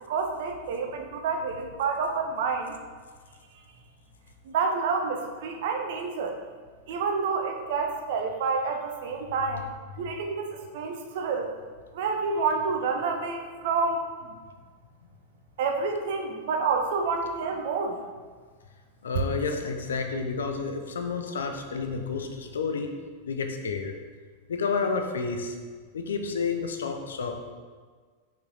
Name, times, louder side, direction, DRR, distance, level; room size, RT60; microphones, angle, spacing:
voice 1, 0.1-2.7 4.5-6.4 6.9-9.7 10.0-11.5 11.9-14.0 15.6-18.0, right 4 dB, 55° right, 4 dB, 0.7 m, -28 dB
voice 2, 19.0-22.9 23.3-23.9 24.5-25.6 25.9-27.5, left 5 dB, 65° left, 5 dB, 0.6 m, -30 dB
5.5 x 4.5 x 4.0 m, 1.5 s
figure-of-eight pair, 90°, 0 cm